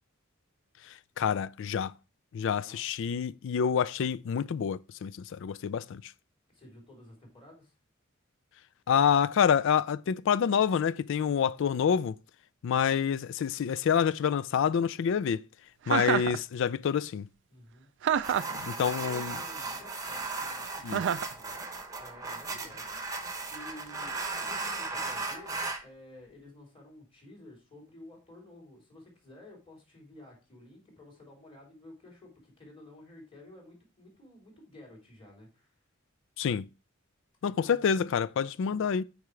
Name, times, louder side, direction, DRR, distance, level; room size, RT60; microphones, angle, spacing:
voice 1, 1.2-1.9 2.3-6.1 8.9-12.2 12.6-15.4 15.9-17.3 18.8-19.4 20.8-21.0 36.4-36.7 37.4-39.0, left 7 dB, 65° left, 0.3 m, -27 dB
voice 2, 6.5-7.7 17.5-17.9 18.4-21.7 21.9-23.2 23.5-35.7 37.4-38.1, left 1 dB, 25° left, 3.3 m, -52 dB
Chuckle chortle, 15.9-16.4 18.0-18.6 20.9-21.3, right 8 dB, 60° right, 0.3 m, -27 dB
sound 1, 18.2-25.8, right 3 dB, 15° right, 0.9 m, -36 dB
8.4 x 4.9 x 3.2 m
head